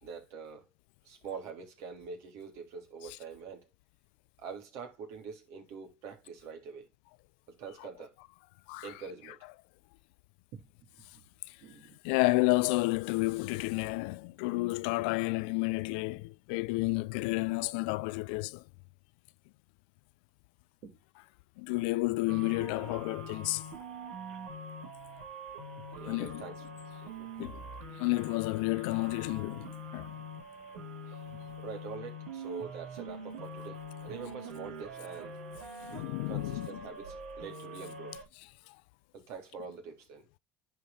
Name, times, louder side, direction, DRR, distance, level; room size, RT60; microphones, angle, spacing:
voice 1, 0.0-0.7 1.0-3.7 4.4-6.9 7.5-8.1 8.8-9.4 10.5-10.6 11.1-11.2 11.6-12.0 20.8-20.9 25.9-26.6 27.0-27.3 30.0-30.2 31.3-35.3 36.3-38.2 39.1-40.3, right 5 dB, 70° right, 3.4 m, -45 dB
voice 2, 12.0-18.6 21.6-23.7 26.1-26.4 27.4-27.7 28.0-30.2 35.8-36.8 38.7-38.8, left 24 dB, 80° left, 0.4 m, -31 dB
sound 1, 22.3-38.2, equal, 90° right, 3.1 m, -44 dB
10.5 x 4.9 x 4.2 m
supercardioid pair, 85°, 5 cm